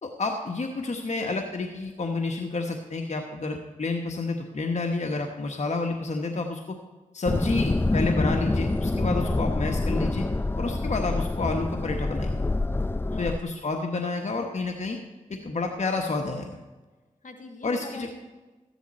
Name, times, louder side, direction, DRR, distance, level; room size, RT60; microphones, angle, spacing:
voice 1, 0.0-6.8 7.1-10.3 10.6-12.4 13.2-15.0 15.3-16.6 17.6-18.1, left 3 dB, 60° left, 3 dB, 1.2 m, -29 dB
sound 1, 7.3-13.4, left 2 dB, 15° left, 0.4 m, -26 dB
voice 2, 13.1-13.6 17.2-18.3, left 3 dB, 75° left, 5 dB, 1.6 m, -42 dB
13.5 x 10.5 x 4.3 m, 1.2 s
cardioid pair, 45°, 13 cm